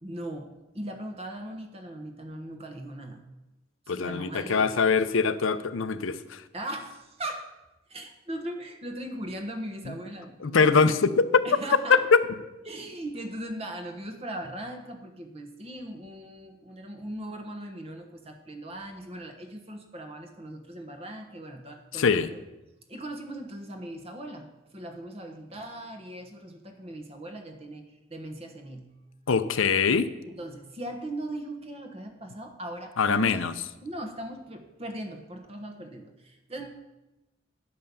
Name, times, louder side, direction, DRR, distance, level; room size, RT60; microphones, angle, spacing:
voice 1, 0.0-3.2 3.9-4.9 6.5-7.5 7.9-10.9 11.4-12.0 12.7-22.3 22.9-28.9 30.2-33.4 33.8-36.7, right 1 dB, 30° right, 5 dB, 1.2 m, -39 dB
voice 2, 3.9-6.4 10.4-11.5 12.1-12.2 22.0-22.3 29.3-30.1 33.0-33.5, left 5 dB, 90° left, 12 dB, 0.6 m, -23 dB
10.5 x 5.6 x 6.8 m, 1.0 s
head